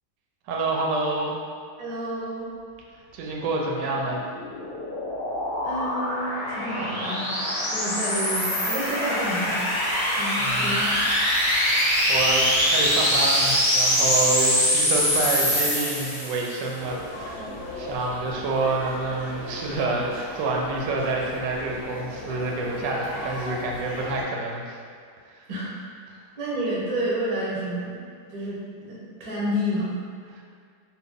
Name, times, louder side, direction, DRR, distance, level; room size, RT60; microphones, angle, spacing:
voice 1, 0.5-1.3 3.1-4.2 10.4-10.9 12.1-17.4 17.8-24.8 25.3-25.4, right 3 dB, 90° right, -1 dB, 1.2 m, -27 dB
voice 2, 1.8-2.5 5.6-7.3 7.7-9.7 10.1-11.0 25.5-25.7 26.4-28.0 28.3-30.0, equal, 40° right, -7 dB, 0.6 m, -29 dB
sound 1, 4.0-16.6, equal, 15° left, 1.0 m, -24 dB
sound 2, 16.8-24.2, left 1 dB, 50° left, 0.7 m, -38 dB
3.0 x 2.5 x 3.5 m, 2.1 s
omnidirectional pair, 1.8 m